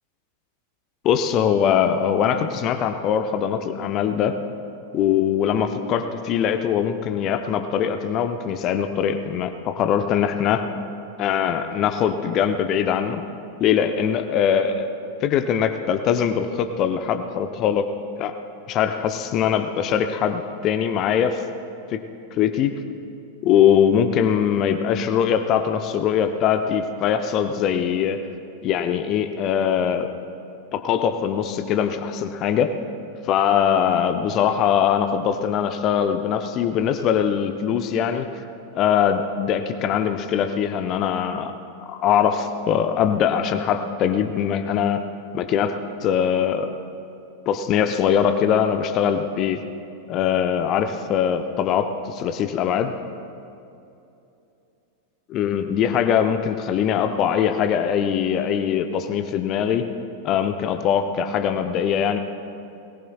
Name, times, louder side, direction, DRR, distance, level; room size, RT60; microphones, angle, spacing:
voice 1, 1.0-4.4 4.9-10.7 11.2-13.2 13.6-14.9 15.2-17.9 18.2-18.3 18.7-21.4 21.9-22.0 22.3-22.7 23.4-28.2 28.6-30.1 30.7-32.7 33.2-38.3 38.7-45.0 45.3-46.7 47.5-49.6 50.1-52.9 55.3-59.8 60.2-62.2, left 8 dB, 35° left, 8 dB, 0.7 m, -22 dB
21.0 x 18.5 x 2.4 m, 2.8 s
figure-of-eight pair, 90°, 0 cm